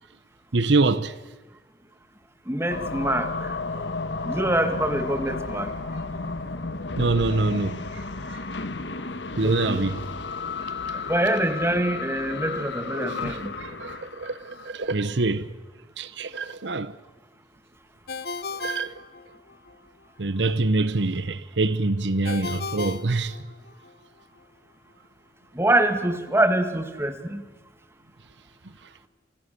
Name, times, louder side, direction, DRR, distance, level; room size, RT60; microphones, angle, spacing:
voice 1, 0.5-1.1 7.0-8.4 9.4-10.0 13.3-15.5 16.0-16.9 18.6-18.9 20.2-23.4, right 3 dB, 80° right, 1.0 m, -25 dB
voice 2, 2.5-3.3 4.3-5.7 9.4-9.9 11.1-13.5 25.6-27.4, right 1 dB, 15° right, 2.1 m, -24 dB
sound 1, 2.7-14.7, left 3 dB, 90° left, 1.5 m, -33 dB
Ringtone, 18.1-19.7 22.2-23.9, left 4 dB, 60° left, 1.0 m, -35 dB
29.5 x 26.0 x 6.8 m
head